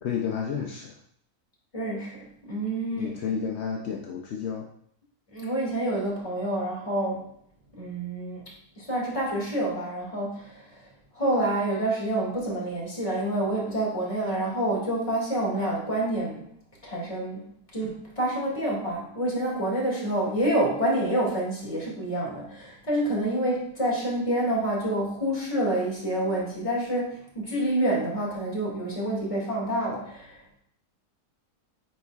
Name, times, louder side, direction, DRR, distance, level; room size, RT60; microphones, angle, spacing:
voice 1, 0.0-1.0 3.0-4.7, left 7 dB, 60° left, 0 dB, 0.7 m, -31 dB
voice 2, 1.7-3.4 5.3-7.2 7.7-8.4 8.8-10.8 11.1-16.4 16.8-17.4 17.7-30.6, right 1 dB, 20° left, -4 dB, 2.0 m, -28 dB
9.7 x 4.2 x 2.3 m, 0.66 s
omnidirectional pair, 1.7 m